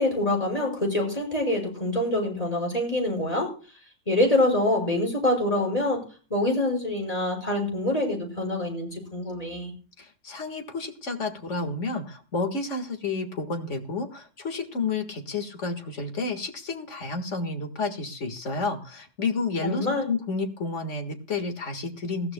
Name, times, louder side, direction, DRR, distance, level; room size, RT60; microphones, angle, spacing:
voice 1, 0.0-3.5 4.1-6.0 6.3-9.7 19.6-20.1, left 1 dB, 30° left, 0 dB, 5.9 m, -25 dB
voice 2, 10.0-22.3, left 3 dB, 85° left, 6 dB, 2.1 m, -31 dB
20.0 x 14.5 x 2.3 m, 0.39 s
omnidirectional pair, 1.2 m